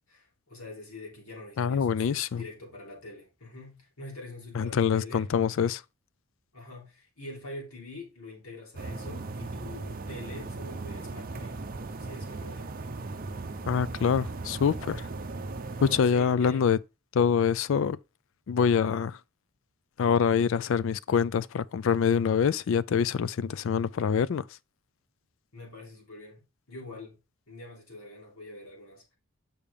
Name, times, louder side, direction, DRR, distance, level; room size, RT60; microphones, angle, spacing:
voice 1, 0.1-5.3 6.5-11.6 12.0-13.0 16.0-16.7 25.5-26.4 26.7-27.2 27.5-29.2, left 2 dB, 80° left, 3.3 m, -45 dB
voice 2, 1.6-2.4 4.6-5.8 13.7-15.1 15.8-16.8 17.1-18.0 18.5-19.2 20.0-24.4, left 7 dB, 60° left, 0.3 m, -25 dB
sound 1, 8.7-16.0, right 3 dB, 40° right, 0.6 m, -37 dB
6.8 x 5.7 x 3.6 m
head